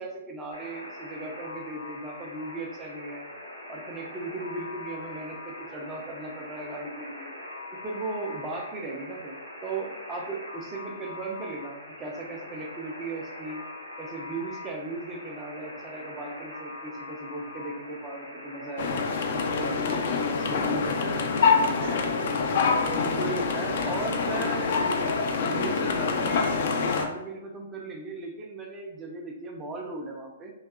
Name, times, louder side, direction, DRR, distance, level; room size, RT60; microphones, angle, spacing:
voice 1, 0.0-3.3 3.7-7.3 7.8-9.3 9.6-13.6 14.0-19.0 19.5-22.2 22.8-24.9 25.5-26.7 27.0-30.5, right 2 dB, 20° right, 0 dB, 0.5 m, -37 dB
Alarm, 0.5-18.9, left 2 dB, 90° left, 1.0 m, -42 dB
sound 1, 18.8-27.1, left 4 dB, 55° left, 0.4 m, -26 dB
2.7 x 2.3 x 2.2 m, 0.99 s
figure-of-eight pair, 125°, 0 cm